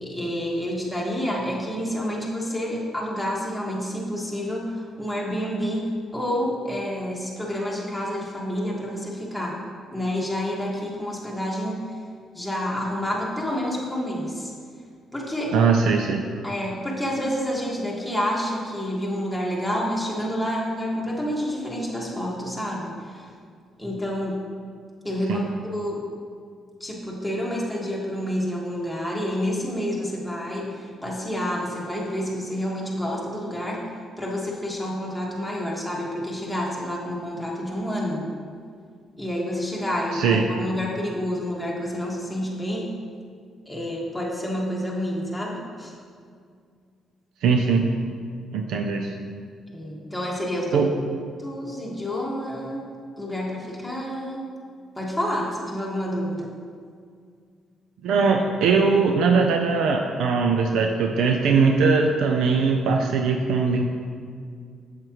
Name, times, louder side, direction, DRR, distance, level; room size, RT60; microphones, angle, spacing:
voice 1, 0.0-5.8 6.1-9.5 9.9-11.8 12.3-14.5 15.1-15.5 16.4-23.3 23.8-24.4 25.0-26.0 26.8-33.8 34.2-38.3 39.2-43.0 43.6-45.9 49.7-50.8 51.4-52.9 53.2-54.5 54.9-56.5, equal, ahead, -4 dB, 1.7 m, -29 dB
voice 2, 15.5-16.3 25.3-25.4 40.1-40.5 47.4-47.8 48.5-49.1 50.7-50.9 58.0-63.8, right 5 dB, 85° right, 3 dB, 0.5 m, -20 dB
7.9 x 7.4 x 3.1 m, 2.2 s
cardioid pair, 90°, 0 cm